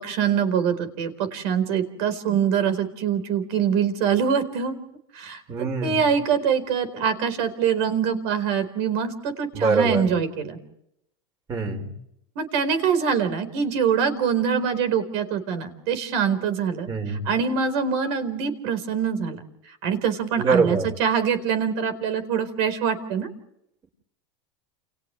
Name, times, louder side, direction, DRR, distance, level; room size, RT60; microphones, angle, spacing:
voice 1, 0.0-4.8 5.1-10.6 12.4-19.4 19.7-23.3, right 7 dB, 65° right, 10 dB, 4.4 m, -24 dB
voice 2, 5.5-6.0 9.5-10.1 11.5-11.9 16.9-17.2 20.4-20.8, right 4 dB, 30° right, 4 dB, 5.1 m, -23 dB
30.0 x 29.0 x 3.3 m, 0.78 s
supercardioid pair, 130°, 15 cm